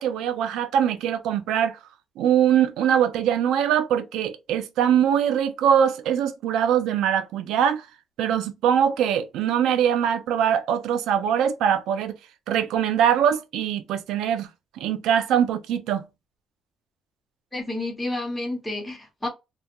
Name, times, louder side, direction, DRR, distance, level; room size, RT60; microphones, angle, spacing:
voice 1, 0.0-1.8 2.2-7.9 8.2-12.1 12.5-14.5 14.8-16.0, right 9 dB, 90° right, 0.4 m, -22 dB
voice 2, 17.5-19.3, left 2 dB, 15° left, 1.1 m, -30 dB
2.2 x 2.1 x 2.8 m
cardioid pair, 90°, 0 cm